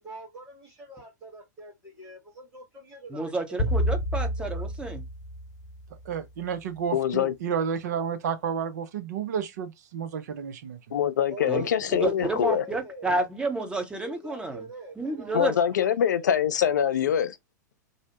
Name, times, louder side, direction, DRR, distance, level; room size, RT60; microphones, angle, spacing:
voice 1, 0.0-3.3 3.7-3.9 4.2-4.6 11.3-13.1 14.0-16.2, right 3 dB, 25° right, 1.3 m, -43 dB
voice 2, 3.1-5.0 11.5-14.7 15.0-15.6, right 2 dB, 10° right, 0.7 m, -30 dB
sound 1, 3.6-6.1, equal, 50° left, 0.9 m, -29 dB
voice 3, 6.1-10.8, right 7 dB, 65° right, 0.5 m, -31 dB
voice 4, 6.9-7.3 10.9-12.6 15.3-17.4, left 9 dB, 70° left, 0.4 m, -24 dB
2.7 x 2.0 x 2.9 m
figure-of-eight pair, 95°, 10 cm